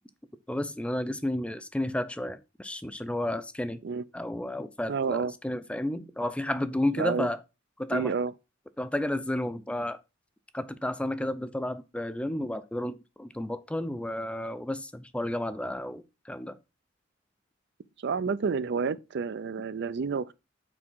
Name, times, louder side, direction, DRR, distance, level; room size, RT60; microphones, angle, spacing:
voice 1, 0.5-3.8 4.1-7.4 7.8-8.1 8.8-10.0 10.5-16.6, left 1 dB, 5° left, 0.5 m, -32 dB
voice 2, 4.9-5.3 7.0-7.3 7.9-8.3 18.0-20.3, right 5 dB, 60° right, 0.4 m, -29 dB
6.1 x 4.7 x 6.1 m
head